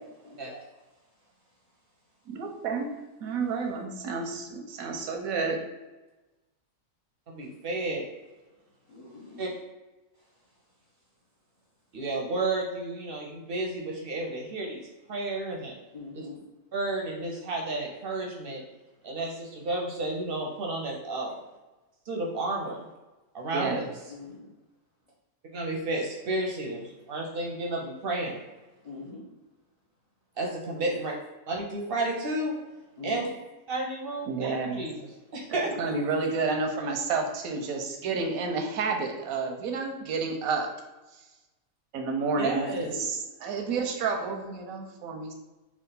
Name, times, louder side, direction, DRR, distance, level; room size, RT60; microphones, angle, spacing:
voice 1, 0.0-2.4 3.5-3.6 8.9-9.5 10.1-11.1 11.6-11.7 15.9-16.5 24.1-24.5 28.8-29.3 30.8-31.0 33.0-33.4 35.7-36.3 42.7-43.1, left 3 dB, 40° left, -5 dB, 0.5 m, -45 dB
voice 2, 2.3-2.9 3.2-5.6 23.5-23.8 34.3-34.8 35.8-40.7 41.9-42.7 43.4-45.3, right 4 dB, 85° right, 3 dB, 1.1 m, -30 dB
voice 3, 7.3-8.0 9.4-9.5 11.9-14.8 15.1-15.7 16.1-16.2 16.7-18.6 19.0-21.3 22.1-22.9 23.3-23.8 25.5-28.4 30.4-31.1 31.5-32.6 33.0-33.3 33.7-35.7 42.4-42.9, right 2 dB, 55° right, -1 dB, 0.6 m, -31 dB
3.6 x 2.4 x 3.8 m, 1.1 s
omnidirectional pair, 1.5 m